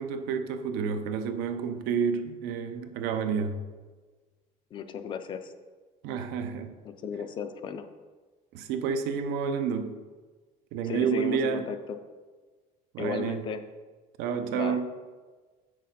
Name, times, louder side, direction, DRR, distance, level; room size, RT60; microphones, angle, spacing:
voice 1, 0.0-3.6 6.0-6.7 8.5-10.0 10.7-11.7 12.9-13.4 14.2-14.9, right 6 dB, 80° right, 0.7 m, -29 dB
voice 2, 4.7-5.5 6.8-7.9 10.8-12.0 13.0-13.6 14.5-14.8, left 6 dB, 30° left, 0.4 m, -35 dB
7.3 x 6.2 x 4.1 m
cardioid pair, 175°, 16 cm